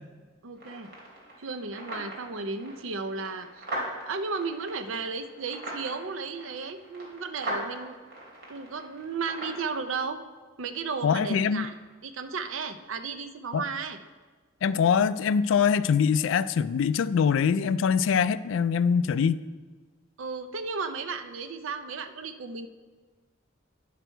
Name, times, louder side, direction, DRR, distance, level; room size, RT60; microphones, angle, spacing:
voice 1, 0.4-0.9 1.4-3.7 4.1-8.0 8.5-10.2 10.6-11.7 12.0-14.0 20.2-22.7, right 4 dB, 80° right, 9 dB, 0.6 m, -34 dB
sound 1, 0.6-9.6, right 1 dB, 55° right, 2.8 m, -40 dB
voice 2, 11.0-11.7 13.5-13.6 14.6-19.4, left 6 dB, 70° left, 16 dB, 0.3 m, -23 dB
10.0 x 6.1 x 4.5 m, 1.4 s
head